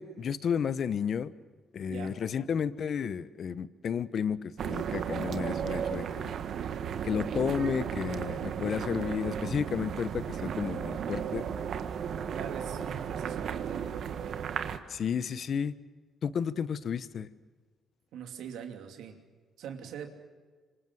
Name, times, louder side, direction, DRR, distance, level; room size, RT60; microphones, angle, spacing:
voice 1, 0.0-1.3 1.7-6.3 7.0-11.5 14.9-15.7 16.2-17.3, left 7 dB, 55° left, 15 dB, 1.0 m, -32 dB
voice 2, 1.9-2.2 12.3-13.9 18.1-19.2 19.6-20.1, right 8 dB, 85° right, 5 dB, 2.8 m, -42 dB
sound 1, 4.6-14.8, right 8 dB, 65° right, 1.6 m, -34 dB
26.0 x 26.0 x 7.8 m, 1.4 s
cardioid pair, 90°, 0 cm